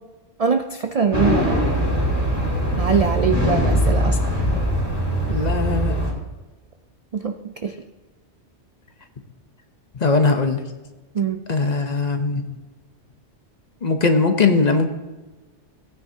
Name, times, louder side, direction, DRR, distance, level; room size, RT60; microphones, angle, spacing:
voice 1, 0.4-1.7 2.8-4.6 7.1-7.4 7.6-7.8 11.1-11.4, right 5 dB, 55° right, 8 dB, 0.4 m, -23 dB
sound 1, 1.1-6.1, equal, 15° left, 2.7 m, -21 dB
voice 2, 5.3-5.9 9.9-10.6 11.5-12.4 13.8-14.9, left 4 dB, 40° left, 6 dB, 0.9 m, -20 dB
17.0 x 9.2 x 2.8 m, 1.2 s
omnidirectional pair, 1.2 m